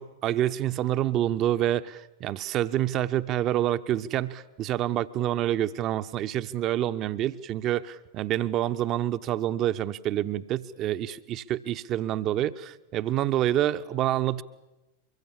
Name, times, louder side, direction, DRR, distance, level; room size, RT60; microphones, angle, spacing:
voice 1, 0.0-14.4, right 12 dB, 35° right, 12 dB, 0.8 m, -27 dB
24.0 x 22.5 x 7.5 m, 0.99 s
figure-of-eight pair, 90°, 0 cm